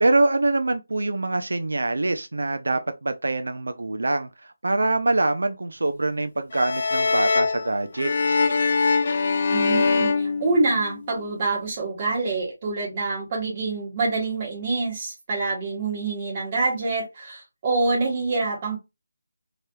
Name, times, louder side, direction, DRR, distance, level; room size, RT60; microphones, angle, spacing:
voice 1, 0.0-4.3 4.6-8.5, right 2 dB, 80° right, 0.4 m, -24 dB
violin tuning, 6.5-11.1, left 4 dB, 40° left, 0.5 m, -23 dB
voice 2, 9.5-18.8, right 3 dB, 25° right, 1.1 m, -26 dB
3.2 x 2.9 x 2.2 m
figure-of-eight pair, 175°, 0 cm